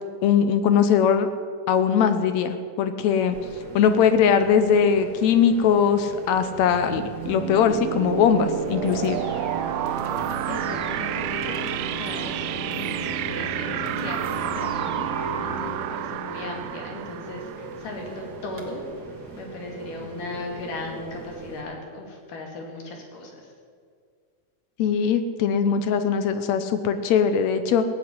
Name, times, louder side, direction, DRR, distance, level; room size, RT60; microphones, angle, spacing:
voice 1, 0.2-1.3 1.7-3.4 3.7-9.2 24.8-27.8, left 7 dB, 75° left, 9 dB, 1.9 m, -20 dB
sound 1, 3.3-21.6, right 4 dB, 35° right, 2.1 m, -40 dB
sound 2, 6.6-18.3, right 12 dB, 80° right, 1.6 m, -30 dB
sound 3, 8.8-15.7, left 2 dB, 35° left, 1.2 m, -36 dB
voice 2, 10.2-18.8 19.3-23.5, left 2 dB, 90° left, 1 dB, 4.0 m, -37 dB
17.0 x 7.7 x 9.8 m, 2.1 s
omnidirectional pair, 3.6 m